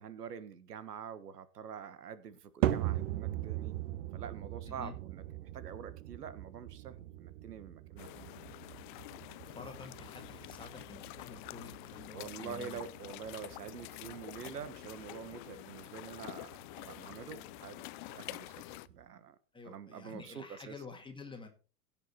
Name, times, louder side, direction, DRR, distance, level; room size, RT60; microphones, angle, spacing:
voice 1, 0.0-3.7 4.1-8.3 12.1-19.4 19.6-20.7, right 7 dB, 85° right, 1.5 m, -46 dB
sound 1, 2.6-19.1, right 13 dB, 50° right, 0.9 m, -41 dB
sound 2, 8.0-18.9, left 19 dB, 35° left, 0.5 m, -48 dB
voice 2, 9.3-12.9 19.5-21.5, left 4 dB, 10° left, 2.1 m, -49 dB
16.5 x 6.0 x 4.3 m
hypercardioid pair, 115°, 46 cm